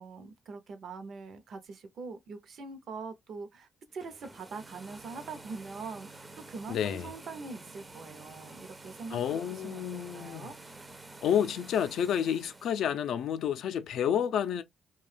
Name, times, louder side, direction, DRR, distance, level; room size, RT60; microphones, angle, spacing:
voice 1, 0.0-9.2 9.5-10.6, right 4 dB, 60° right, 0.6 m, -43 dB
sound 1, 3.9-12.8, right 2 dB, 20° right, 0.5 m, -49 dB
voice 2, 6.7-7.1 9.1-10.5 11.2-14.6, left 9 dB, 70° left, 0.4 m, -30 dB
2.6 x 2.3 x 3.2 m
cardioid pair, 90°, 0 cm